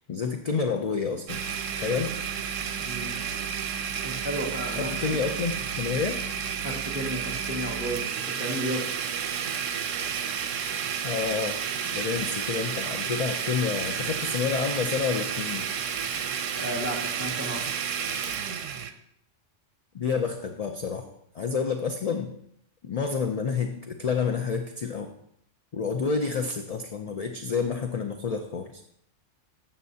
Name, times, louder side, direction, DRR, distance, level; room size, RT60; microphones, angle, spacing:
voice 1, 0.1-1.4 1.7-2.1 4.7-6.2 11.0-11.6 11.9-15.7 19.9-21.1 21.3-22.3 22.8-25.1 25.7-28.7, left 5 dB, 45° left, 5 dB, 0.5 m, -29 dB
Domestic sounds home sounds, 1.3-18.9, right 7 dB, 90° right, 1.1 m, -31 dB
voice 2, 2.7-3.2 4.0-5.0 6.6-8.9 16.6-17.7, right 1 dB, 10° right, -3 dB, 1.6 m, -33 dB
12.5 x 7.6 x 2.8 m, 0.72 s
omnidirectional pair, 1.3 m